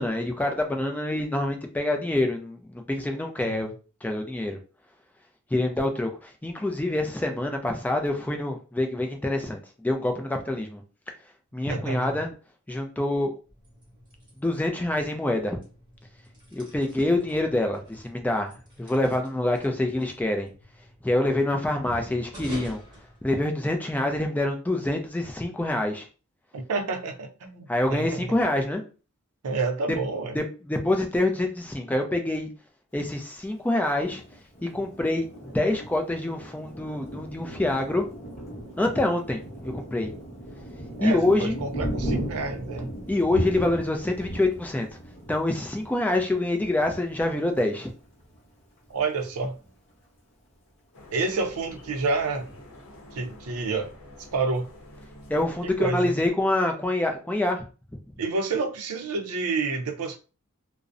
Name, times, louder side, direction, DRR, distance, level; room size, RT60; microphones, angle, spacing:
voice 1, 0.0-3.7 4.0-4.6 5.5-10.8 11.5-12.3 12.7-13.3 14.4-15.6 16.5-18.5 18.8-20.5 21.0-22.8 23.2-26.1 27.7-28.8 30.3-32.5 32.9-34.2 34.6-38.1 38.8-40.1 41.0-41.6 43.1-44.9 45.3-47.9 55.3-57.6, left 1 dB, 5° left, 0.3 m, -26 dB
voice 2, 3.4-3.7 11.7-12.1 26.5-28.1 29.4-30.4 41.0-42.9 48.9-49.6 51.1-52.5 53.1-53.9 54.3-54.7 55.8-56.1 58.2-60.2, right 3 dB, 80° right, 0.5 m, -29 dB
sound 1, 13.4-23.9, equal, 20° right, 0.9 m, -47 dB
Thunder, 34.0-48.4 48.9-49.0 49.3-49.9, right 1 dB, 30° left, 0.8 m, -37 dB
sound 2, 50.9-56.0, left 1 dB, 65° left, 0.7 m, -48 dB
2.5 x 2.0 x 2.4 m
head